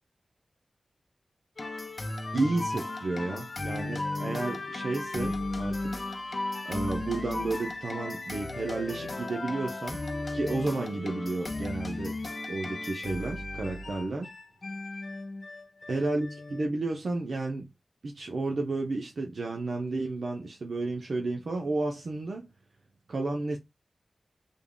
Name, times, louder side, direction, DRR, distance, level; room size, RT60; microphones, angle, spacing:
sound 1, 1.6-16.7, left 2 dB, 45° left, 0.6 m, -35 dB
voice 1, 2.3-6.0 6.6-10.0 10.3-12.2 12.5-14.3 15.9-17.7 18.0-22.5 23.1-23.6, right 2 dB, 75° right, 0.5 m, -32 dB
3.5 x 2.1 x 3.7 m
wide cardioid pair, 110°, 0 cm